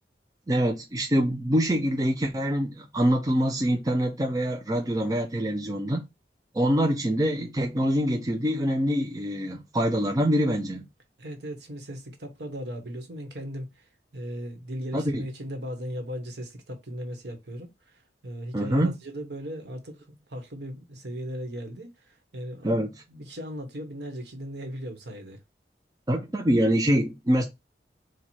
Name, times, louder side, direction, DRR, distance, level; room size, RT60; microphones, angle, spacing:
voice 1, 0.5-6.0 6.5-10.9 14.9-15.2 18.5-18.9 22.6-22.9 26.1-27.5, equal, 20° right, 0.5 m, -25 dB
voice 2, 11.2-22.8 23.1-25.4, equal, 70° right, 1.2 m, -37 dB
4.6 x 2.4 x 4.2 m
head